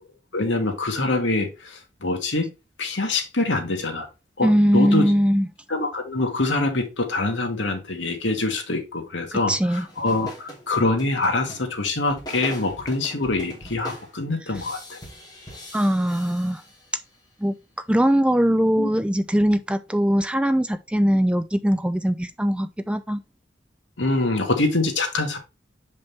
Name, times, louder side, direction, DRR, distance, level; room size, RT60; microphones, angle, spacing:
voice 1, 0.3-2.5 2.8-4.1 4.4-5.1 5.7-15.0 18.8-18.9 24.0-25.4, left 2 dB, 75° left, 1.8 m, -25 dB
voice 2, 4.4-5.5 9.3-9.9 15.7-16.6 17.4-17.5 17.9-23.2, equal, 5° right, 0.4 m, -21 dB
sound 1, 9.7-17.1, equal, 20° left, 3.0 m, -41 dB
6.9 x 5.2 x 3.4 m
head